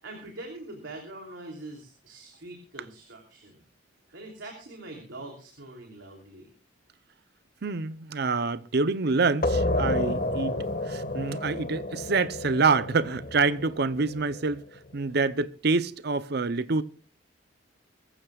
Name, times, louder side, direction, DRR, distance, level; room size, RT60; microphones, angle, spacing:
voice 1, 0.0-3.6 4.1-6.5, right 2 dB, 75° right, 3.2 m, -43 dB
voice 2, 7.6-14.6 14.9-16.8, right 4 dB, 55° right, 0.7 m, -26 dB
sound 1, 9.4-14.8, left 1 dB, 45° left, 1.7 m, -30 dB
23.0 x 15.0 x 2.4 m
head